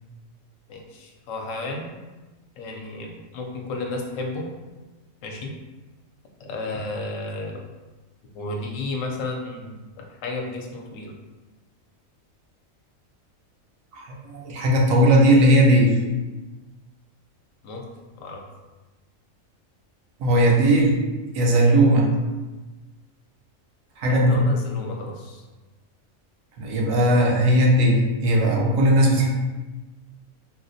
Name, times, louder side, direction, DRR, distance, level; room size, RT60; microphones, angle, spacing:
voice 1, 0.7-2.0 2.6-4.5 5.2-5.5 6.4-7.6 8.3-11.1 17.6-18.4 24.1-25.4, left 2 dB, 75° left, 1 dB, 0.9 m, -33 dB
voice 2, 13.9-15.9 20.2-21.0 21.3-22.1 24.0-24.4 26.6-29.3, right 1 dB, 80° right, -1 dB, 1.0 m, -18 dB
4.0 x 2.0 x 2.6 m, 1.2 s
omnidirectional pair, 1.4 m